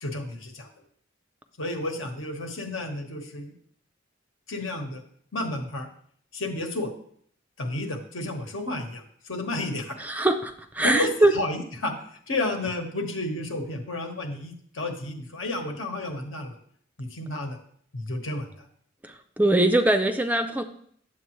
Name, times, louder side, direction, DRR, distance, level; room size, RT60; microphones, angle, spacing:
voice 1, 0.0-0.7 1.6-3.5 4.5-5.0 5.3-5.9 6.3-6.9 7.6-10.0 10.8-16.5 17.0-17.6 17.9-18.7, left 1 dB, 80° left, 4 dB, 1.3 m, -31 dB
voice 2, 10.0-11.3 19.0-20.6, right 1 dB, 10° right, 7 dB, 0.4 m, -22 dB
9.4 x 7.5 x 3.1 m, 0.63 s
head